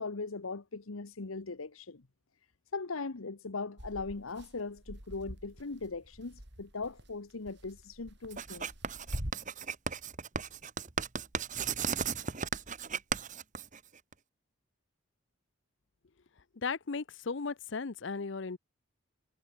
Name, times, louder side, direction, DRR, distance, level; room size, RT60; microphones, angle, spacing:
voice 1, 0.0-2.0 2.7-8.7, left 3 dB, 85° left, 1.1 m, -39 dB
sound 1, 3.8-9.3, equal, 55° right, 4.8 m, -44 dB
Writing, 8.3-14.1, right 6 dB, 35° right, 1.3 m, -36 dB
voice 2, 16.5-18.6, left 4 dB, 60° left, 0.7 m, -36 dB
head